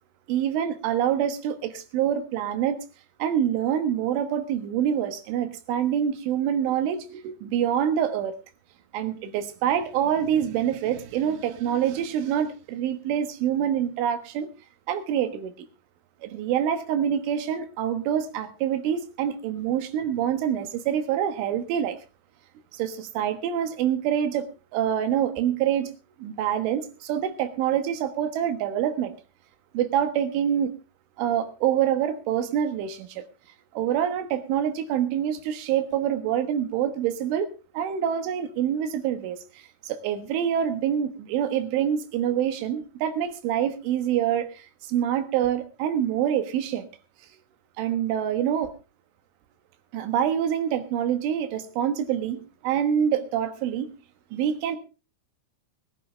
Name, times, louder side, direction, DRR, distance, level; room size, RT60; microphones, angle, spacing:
voice 1, 0.3-2.8 3.2-8.3 8.9-14.5 14.9-15.7 16.2-22.0 22.7-24.5 24.7-25.9 26.2-29.1 29.7-30.7 31.2-33.2 33.8-39.4 39.9-46.9 47.8-48.7 49.9-53.9 54.3-54.8, right 9 dB, 90° right, 9 dB, 3.9 m, -26 dB
22.0 x 10.5 x 3.3 m, 0.32 s
omnidirectional pair, 5.4 m